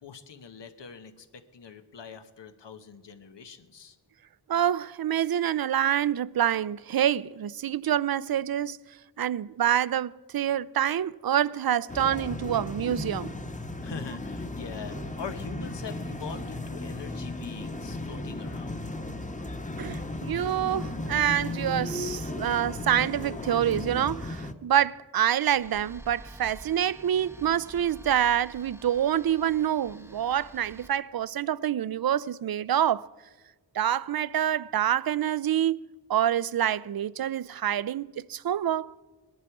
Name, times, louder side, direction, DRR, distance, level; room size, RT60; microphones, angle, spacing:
voice 1, 0.0-4.0 13.8-19.1, left 5 dB, 80° left, 1.2 m, -43 dB
voice 2, 4.5-8.8 9.2-13.3 19.8-33.1 33.7-38.9, right 10 dB, 60° right, 0.5 m, -26 dB
sound 1, 11.9-24.5, left 2 dB, 20° left, 1.1 m, -35 dB
sound 2, 25.4-30.9, right 1 dB, 5° right, 0.8 m, -49 dB
19.5 x 11.0 x 4.8 m
cardioid pair, 45°, 42 cm